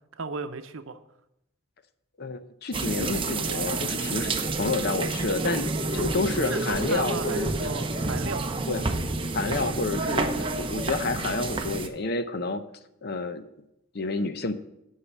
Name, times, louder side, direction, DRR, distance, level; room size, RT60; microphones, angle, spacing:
voice 1, 0.1-1.0 5.9-6.1 6.4-8.4, right 4 dB, 75° right, 9 dB, 0.7 m, -35 dB
voice 2, 2.2-4.3 4.6-7.7 8.7-9.0 9.3-12.6 13.0-13.4 13.9-14.5, left 3 dB, 50° left, 11 dB, 0.6 m, -29 dB
sound 1, 2.7-11.9, right 3 dB, 25° right, 0.7 m, -29 dB
9.7 x 5.7 x 7.3 m, 0.83 s
head